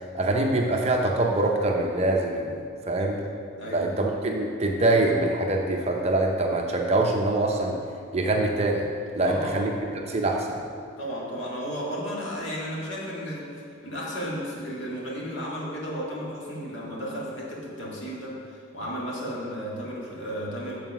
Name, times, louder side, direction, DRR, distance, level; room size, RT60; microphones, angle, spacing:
voice 1, 0.1-3.2 3.7-7.8 8.1-8.9 9.1-9.7 10.0-10.6, right 2 dB, 30° right, 1 dB, 0.6 m, -24 dB
voice 2, 3.6-3.9 9.2-9.7 11.0-20.8, equal, 65° left, -5 dB, 1.8 m, -34 dB
7.6 x 4.6 x 5.9 m, 2.4 s
head